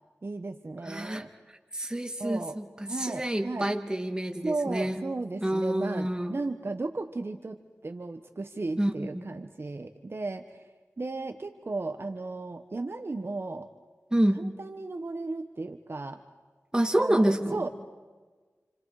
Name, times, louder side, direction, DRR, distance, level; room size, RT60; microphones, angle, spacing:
voice 1, 0.2-1.3 2.2-2.6 2.9-3.7 4.4-7.6 7.8-10.4 11.0-13.7 14.4-16.2 17.0-17.7, right 3 dB, 50° right, 6 dB, 1.2 m, -35 dB
voice 2, 0.8-1.2 1.7-5.0 5.4-6.4 8.8-9.3 14.1-14.5 16.7-17.7, right 1 dB, 15° right, 4 dB, 2.2 m, -28 dB
29.0 x 28.5 x 5.0 m, 1.4 s
wide cardioid pair, 75°, 5 cm